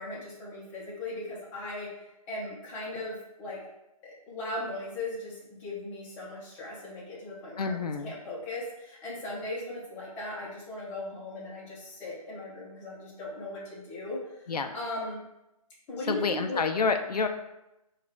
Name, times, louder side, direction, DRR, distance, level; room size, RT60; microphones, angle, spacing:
voice 1, 0.0-3.6 4.0-7.8 8.0-15.2 15.9-16.6, left 2 dB, 10° left, -6 dB, 0.7 m, -38 dB
voice 2, 7.6-8.1 14.5-14.7 16.1-17.3, left 4 dB, 90° left, 6 dB, 0.5 m, -28 dB
5.0 x 2.4 x 3.5 m, 0.91 s
figure-of-eight pair, 150°, 20 cm